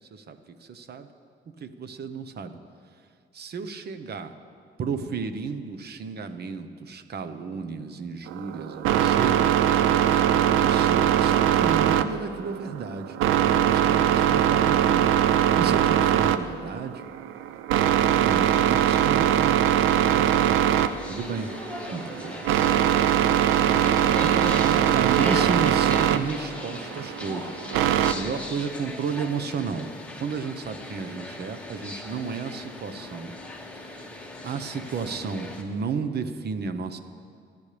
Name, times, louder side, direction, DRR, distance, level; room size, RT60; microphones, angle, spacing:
voice 1, 0.1-1.1 1.6-2.6 3.3-4.3 4.8-9.4 10.5-15.1 15.6-17.0 18.1-19.6 19.9-20.6 21.1-21.5 21.9-22.4 23.3-27.6 28.1-29.9 30.2-33.3 33.7-34.1 34.4-37.0, right 5 dB, 55° right, 9 dB, 1.1 m, -33 dB
sound 1, 8.3-28.1, right 10 dB, 90° right, 0.6 m, -22 dB
sound 2, 19.9-35.6, left 1 dB, 5° left, 1.7 m, -38 dB
27.0 x 10.5 x 3.4 m, 2.2 s
cardioid pair, 90°, 20 cm